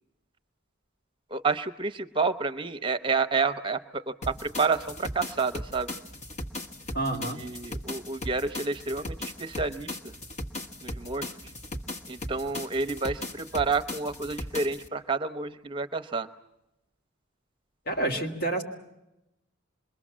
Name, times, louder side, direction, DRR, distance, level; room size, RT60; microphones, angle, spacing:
voice 1, 1.3-5.9 7.2-10.1 10.8-11.3 12.1-16.3, right 4 dB, 25° right, 11 dB, 0.8 m, -29 dB
sound 1, 4.2-14.9, left 1 dB, 35° left, 1.5 m, -38 dB
voice 2, 6.9-7.4 17.9-18.6, right 2 dB, 55° left, 2 dB, 3.1 m, -28 dB
27.0 x 22.0 x 7.5 m, 0.91 s
head